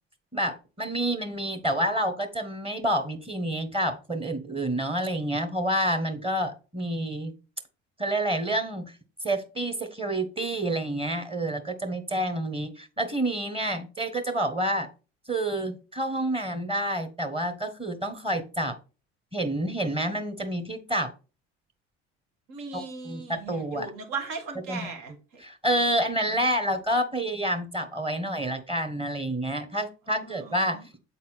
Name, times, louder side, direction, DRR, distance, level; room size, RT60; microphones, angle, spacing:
voice 1, 0.3-7.3 8.0-8.9 9.2-14.9 15.3-18.8 19.3-21.1 22.7-23.9 24.7-24.9 25.4-30.8, right 1 dB, 15° right, 7 dB, 1.3 m, -28 dB
voice 2, 22.5-25.4 30.1-30.9, right 4 dB, 65° right, 3 dB, 1.8 m, -38 dB
7.5 x 4.2 x 4.3 m, 0.33 s
hypercardioid pair, 60°, 34 cm